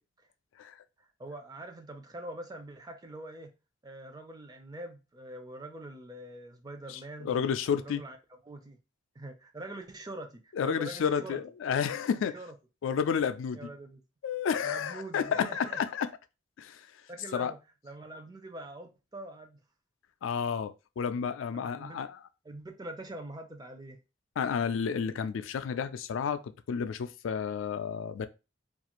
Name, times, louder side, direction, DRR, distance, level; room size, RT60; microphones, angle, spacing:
voice 1, 1.0-3.5 3.8-7.3 7.8-8.2 8.4-8.8 9.2-11.4 12.3-12.5 13.5-14.0 14.6-15.8 17.1-19.6 21.5-22.0 22.4-24.0, right 1 dB, 20° right, 0.4 m, -44 dB
voice 2, 6.9-8.0 10.5-12.3 12.8-13.7 14.2-16.1 16.6-16.9 17.3-17.5 20.2-22.2 24.4-28.3, left 7 dB, 80° left, 0.3 m, -31 dB
2.4 x 2.4 x 2.9 m
head